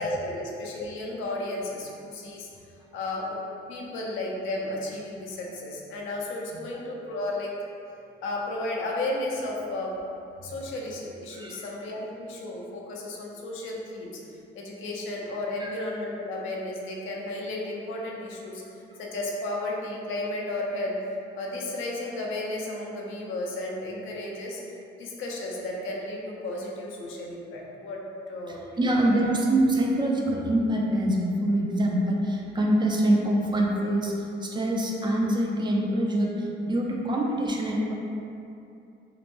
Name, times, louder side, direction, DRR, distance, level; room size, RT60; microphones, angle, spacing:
voice 1, 0.0-2.5 2.9-7.6 8.2-10.0 10.4-14.2 14.5-21.0 21.4-24.6 25.0-29.0, left 2 dB, 80° left, -2 dB, 0.5 m, -33 dB
voice 2, 11.3-11.7 15.6-15.7 28.5-37.9, right 1 dB, 25° right, -2 dB, 0.3 m, -25 dB
2.9 x 2.1 x 2.5 m, 2.6 s
cardioid pair, 90°, 20 cm